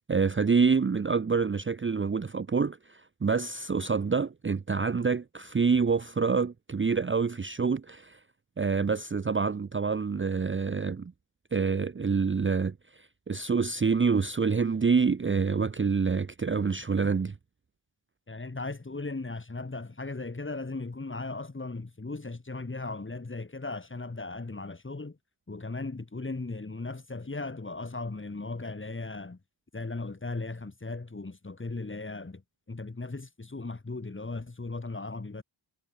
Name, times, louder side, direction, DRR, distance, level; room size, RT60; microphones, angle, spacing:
voice 1, 0.1-8.2 8.6-11.1 11.5-17.3, right 5 dB, 25° right, 0.7 m, -27 dB
voice 2, 18.3-25.2 25.5-29.4 29.7-32.4 32.7-35.4, left 3 dB, 25° left, 5.8 m, -37 dB
wide cardioid pair, 150°, 46 cm